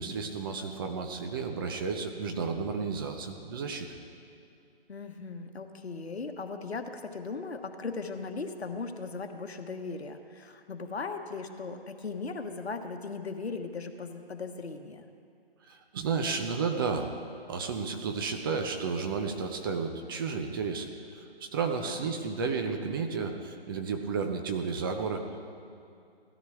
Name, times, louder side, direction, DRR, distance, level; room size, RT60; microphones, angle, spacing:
voice 1, 0.0-3.9 15.7-17.2 17.5-25.4, right 5 dB, 20° right, 4 dB, 0.6 m, -32 dB
voice 2, 4.9-15.0 21.8-22.2, left 4 dB, 80° left, 6 dB, 1.3 m, -38 dB
17.5 x 13.0 x 3.5 m, 2.5 s
figure-of-eight pair, 150°, 31 cm